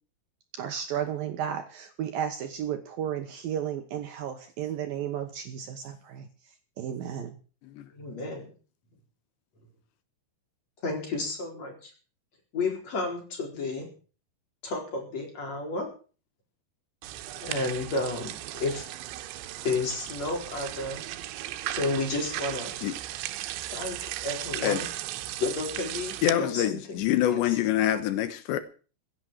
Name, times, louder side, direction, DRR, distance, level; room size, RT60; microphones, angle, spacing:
voice 1, 0.5-6.3 6.8-7.4, right 9 dB, 70° right, 2.4 m, -33 dB
voice 2, 7.9-8.5 10.8-11.9 12.5-13.9 14.6-15.9 17.4-18.9 19.6-21.0 21.8-22.7 23.7-24.9 25.4-27.0 27.3-27.4, left 3 dB, 35° left, 5.4 m, -31 dB
sound 1, 17.0-26.3, right 14 dB, 85° right, 3.3 m, -36 dB
voice 3, 26.2-28.6, left 12 dB, 75° left, 3.3 m, -26 dB
16.0 x 9.1 x 7.5 m
omnidirectional pair, 5.2 m